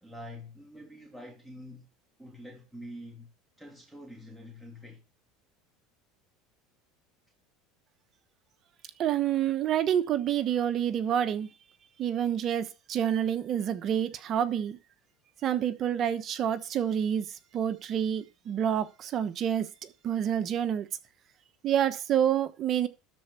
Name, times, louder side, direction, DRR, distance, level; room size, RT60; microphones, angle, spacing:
voice 1, 0.0-1.9 2.2-3.3 3.6-5.0, left 1 dB, ahead, 2.8 m, -46 dB
voice 2, 9.0-11.5 12.0-14.8 15.4-20.9 21.6-22.9, right 9 dB, 45° right, 1.1 m, -28 dB
13.0 x 4.5 x 7.0 m
supercardioid pair, 100°, 0 cm